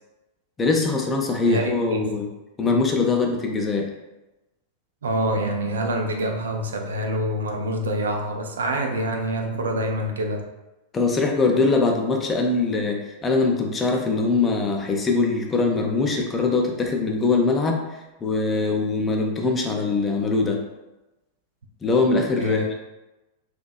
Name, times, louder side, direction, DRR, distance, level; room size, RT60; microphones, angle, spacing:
voice 1, 0.6-2.3 2.6-3.9 10.9-17.8 18.2-20.6 21.8-22.7, left 3 dB, 20° left, 1 dB, 0.4 m, -22 dB
voice 2, 1.5-2.2 5.0-10.4 22.4-22.7, right 1 dB, 65° right, 3 dB, 0.3 m, -26 dB
2.6 x 2.2 x 2.3 m, 1.0 s
figure-of-eight pair, 90°, 0 cm